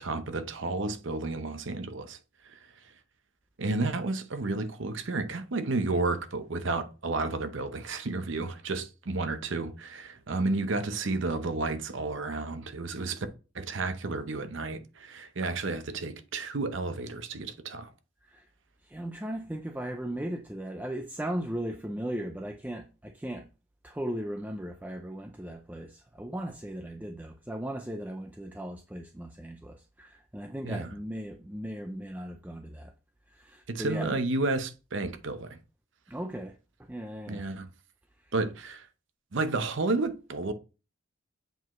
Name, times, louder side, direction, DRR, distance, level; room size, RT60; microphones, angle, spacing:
voice 1, 0.0-2.2 2.5-2.6 3.6-13.3 13.5-17.9 30.6-30.9 33.7-35.6 37.3-37.7 38.3-38.9 39.3-40.5, right 3 dB, 60° right, 0.7 m, -31 dB
voice 2, 18.8-23.5 23.8-32.9 33.3-34.2 35.0-35.1 36.1-36.6 36.9-37.5 38.2-38.4, right 1 dB, 10° right, 0.4 m, -37 dB
7.9 x 4.7 x 3.0 m
head